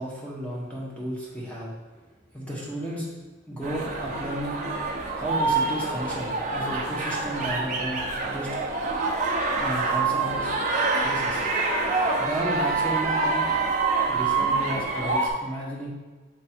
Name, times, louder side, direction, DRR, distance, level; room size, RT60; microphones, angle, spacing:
voice 1, 0.0-1.7 2.3-3.1 3.5-4.7 5.1-8.6 9.6-10.5 11.0-11.4 12.2-13.6 14.1-15.9, right 1 dB, 5° left, -5 dB, 1.3 m, -33 dB
sound 1, 3.6-15.3, right 3 dB, 40° right, 0.8 m, -26 dB
6.7 x 3.3 x 4.4 m, 1.3 s
head